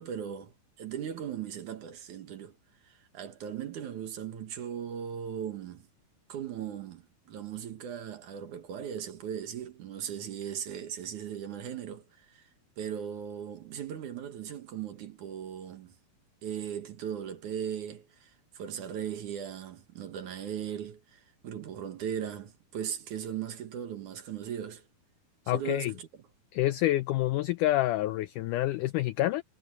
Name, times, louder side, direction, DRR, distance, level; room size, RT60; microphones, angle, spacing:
voice 1, 0.0-2.6 2.8-5.9 6.3-12.5 12.8-16.0 16.4-24.8 25.5-26.2, right 9 dB, 60° right, 2.6 m, -38 dB
voice 2, 25.5-25.9 26.5-29.4, left 15 dB, 90° left, 1.8 m, -27 dB
omnidirectional pair, 4.3 m